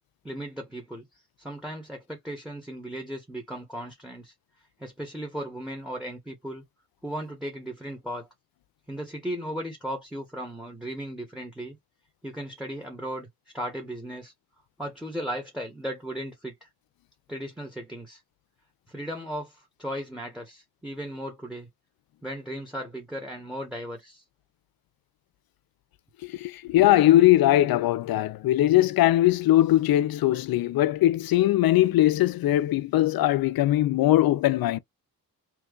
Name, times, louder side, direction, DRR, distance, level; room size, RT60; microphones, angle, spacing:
voice 1, 0.2-1.1 1.4-4.3 4.8-6.6 7.0-8.3 8.9-11.8 12.2-13.3 13.5-14.3 14.8-16.7 17.3-18.2 18.9-21.7 22.2-24.2, equal, ahead, 1.2 m, -36 dB
voice 2, 26.2-34.8, left 14 dB, 75° left, 0.5 m, -21 dB
3.0 x 2.3 x 3.8 m
cardioid pair, 100°, 36 cm